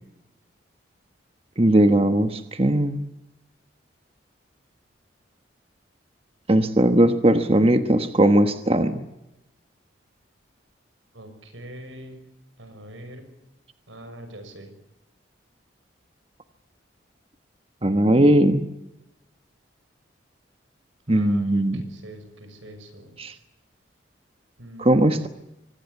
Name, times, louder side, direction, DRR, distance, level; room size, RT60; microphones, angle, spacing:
voice 1, 1.6-3.0 6.5-9.0 17.8-18.6 21.1-21.8 23.2-23.3 24.8-25.3, right 1 dB, 30° right, 8 dB, 1.2 m, -19 dB
voice 2, 11.1-12.2 12.6-13.3 13.9-14.7 21.1-23.2 24.6-25.2, right 1 dB, 90° right, 8 dB, 6.3 m, -43 dB
24.5 x 19.0 x 8.3 m, 0.93 s
head